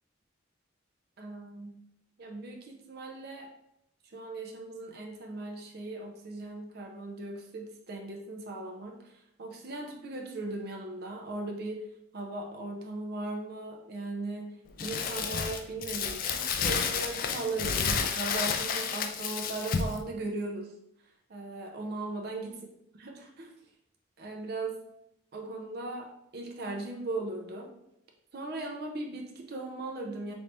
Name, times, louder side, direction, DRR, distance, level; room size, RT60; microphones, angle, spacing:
voice 1, 1.2-1.8 2.2-3.5 4.0-9.1 9.4-11.9 12.1-20.7 21.3-22.6 23.0-23.5 24.2-24.8 25.3-27.7 28.3-30.3, right 2 dB, 55° right, 2 dB, 0.6 m, -38 dB
Crumpling crinkling, 14.8-20.0, left 6 dB, 45° left, 0.3 m, -31 dB
3.3 x 3.0 x 2.7 m, 0.77 s
head